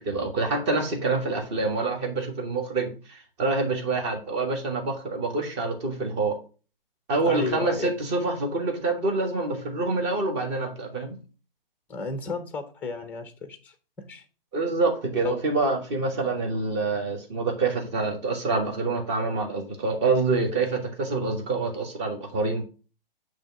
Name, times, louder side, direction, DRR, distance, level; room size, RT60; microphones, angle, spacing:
voice 1, 0.0-6.4 7.1-11.2 14.5-22.6, right 3 dB, 30° right, 3 dB, 1.6 m, -26 dB
voice 2, 7.3-7.9 11.9-14.2 15.2-15.3, left 4 dB, 5° left, 9 dB, 0.6 m, -32 dB
8.8 x 3.2 x 5.7 m, 0.35 s
figure-of-eight pair, 125°, 29 cm